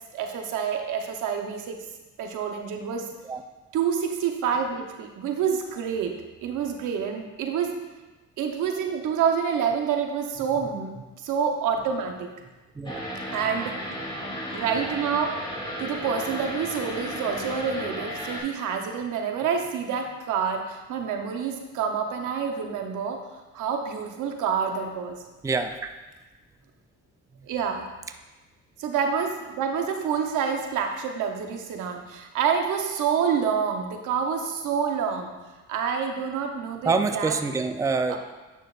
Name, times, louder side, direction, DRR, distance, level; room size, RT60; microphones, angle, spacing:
voice 1, 0.1-1.8 2.2-3.1 3.7-7.8 8.4-12.3 13.3-13.8 14.5-15.4 15.8-23.2 23.5-25.2 27.5-27.9 28.8-35.3 35.7-37.3 38.1-38.2, right 7 dB, 85° right, 4 dB, 0.9 m, -27 dB
sound 1, 12.9-18.4, equal, 15° left, 1.9 m, -34 dB
voice 2, 25.4-26.0 36.8-38.2, right 4 dB, 10° right, 7 dB, 0.4 m, -26 dB
9.1 x 6.4 x 2.4 m, 1.2 s
cardioid pair, 90°, 30 cm